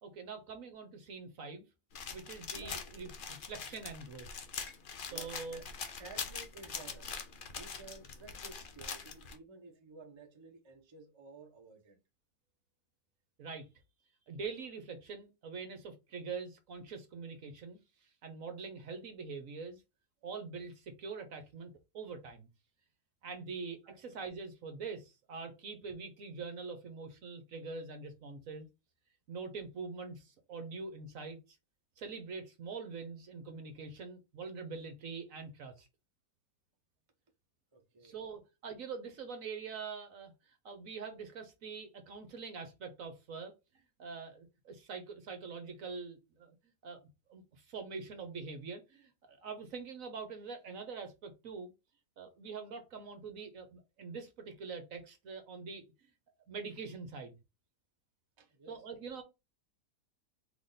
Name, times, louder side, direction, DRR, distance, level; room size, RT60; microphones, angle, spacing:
voice 1, 0.0-1.6 2.1-4.3 5.1-5.6 13.4-13.7 14.3-17.8 18.2-19.8 20.2-22.5 23.2-28.7 29.3-31.4 32.0-35.9 38.0-43.5 44.0-46.5 46.8-47.0 47.3-51.7 52.2-55.8 56.5-57.4 58.7-59.2, right 4 dB, 60° right, 1.1 m, -44 dB
sound 1, 1.9-9.4, left 6 dB, 85° left, 0.4 m, -43 dB
voice 2, 2.3-2.8 5.1-5.6 6.0-7.2 7.5-12.0 23.8-24.0 37.7-38.2 58.4-58.8, right 4 dB, 25° right, 0.6 m, -54 dB
3.8 x 3.3 x 3.9 m
omnidirectional pair, 1.8 m